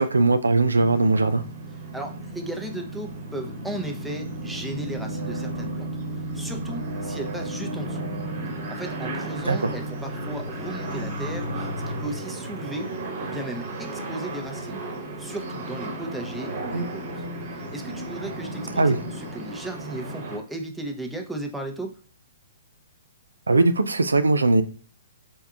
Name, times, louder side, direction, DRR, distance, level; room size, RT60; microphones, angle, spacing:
voice 1, 0.0-1.4 9.5-9.8 16.7-16.9 18.8-19.0 23.5-24.6, right 3 dB, 75° right, 0.3 m, -20 dB
sound 1, 0.7-20.4, right 1 dB, 45° right, 1.0 m, -33 dB
voice 2, 1.9-5.9 6.3-8.0 8.7-12.9 13.2-14.8 15.2-17.2 17.5-21.9, right 1 dB, ahead, 0.6 m, -35 dB
4.4 x 3.5 x 2.3 m
figure-of-eight pair, 120°, 0 cm